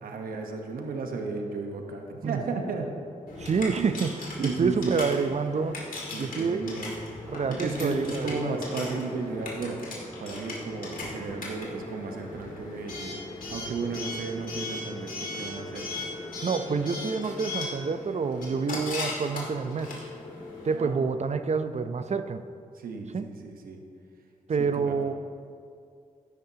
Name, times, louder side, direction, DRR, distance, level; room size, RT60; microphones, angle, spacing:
voice 1, 0.0-2.9 3.8-3.9 4.4-5.1 6.1-7.0 7.5-13.2 13.5-16.1 20.7-21.0 22.7-23.8 24.6-24.9, right 4 dB, 85° right, 3 dB, 1.1 m, -34 dB
Coin (dropping) / Alarm, 3.3-20.8, left 2 dB, 70° left, 2.3 m, -38 dB
voice 2, 3.4-5.8 6.2-6.6 7.3-8.5 16.4-20.0 20.6-22.4 23.1-23.2 24.5-25.1, right 5 dB, 50° right, 10 dB, 0.6 m, -28 dB
13.5 x 10.5 x 2.9 m, 2.4 s
cardioid pair, 55°, 15 cm